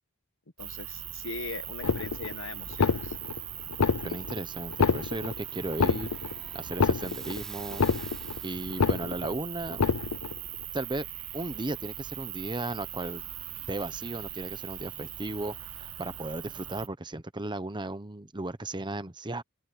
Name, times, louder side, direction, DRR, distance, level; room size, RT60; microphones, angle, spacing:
voice 1, 0.6-3.1, left 3 dB, 60° left, 1.3 m, -40 dB
sound 1, 0.6-16.9, right 12 dB, 90° right, 1.9 m, -40 dB
sound 2, 1.8-2.4 2.7-3.4 3.7-4.4 4.7-5.4 5.7-6.4 6.7-7.4 7.7-8.4 8.7-9.4 9.7-10.4, left 5 dB, 80° left, 0.6 m, -27 dB
voice 2, 4.0-6.1 6.5-7.8 8.4-9.8 10.7-11.1 11.3-13.2 13.7-19.4, right 2 dB, 20° right, 1.0 m, -35 dB
sound 3, 4.4-9.0, left 1 dB, 5° left, 3.3 m, -54 dB
open air
head